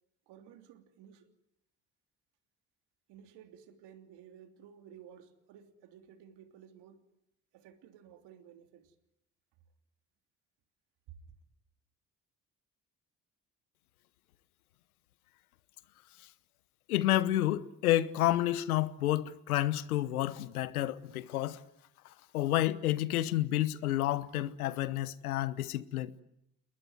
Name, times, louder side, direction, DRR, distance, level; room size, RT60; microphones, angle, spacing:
voice 1, 0.3-1.3 3.1-7.1 7.5-8.9, right 9 dB, 70° right, 3.3 m, -55 dB
voice 2, 16.9-21.6 22.3-26.1, left 14 dB, 90° left, 1.1 m, -30 dB
28.5 x 21.5 x 9.4 m
hypercardioid pair, 50°, 43 cm